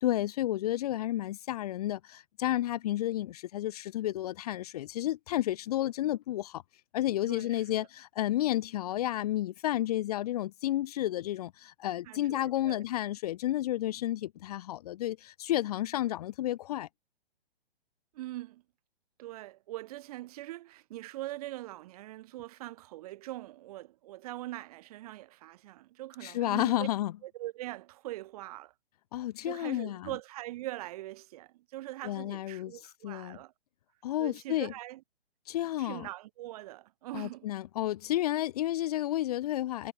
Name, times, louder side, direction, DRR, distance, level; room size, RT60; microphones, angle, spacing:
voice 1, 0.0-6.6 6.9-16.9 26.2-27.1 29.1-30.1 32.0-33.4 34.0-34.7 35.5-36.1 37.1-39.9, left 14 dB, 40° left, 1.5 m, -31 dB
voice 2, 7.3-7.8 12.1-12.8 18.1-18.6 19.2-26.9 27.2-28.7 29.4-33.5 34.2-35.0 35.8-37.5, right 16 dB, 35° right, 4.6 m, -42 dB
hypercardioid pair, 145°, 31 cm